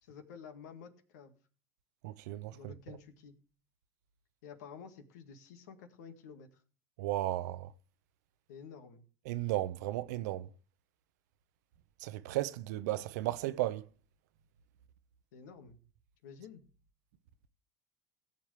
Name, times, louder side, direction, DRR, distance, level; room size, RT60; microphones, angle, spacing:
voice 1, 0.0-1.4 2.5-3.3 4.4-6.6 8.5-9.0 15.3-15.8 16.2-16.6, left 6 dB, 80° left, 1.8 m, -51 dB
voice 2, 2.0-2.7 7.0-7.7 9.3-10.5 12.0-13.9, right 15 dB, 75° right, 0.7 m, -35 dB
18.0 x 7.3 x 3.3 m
hypercardioid pair, 80°, 9 cm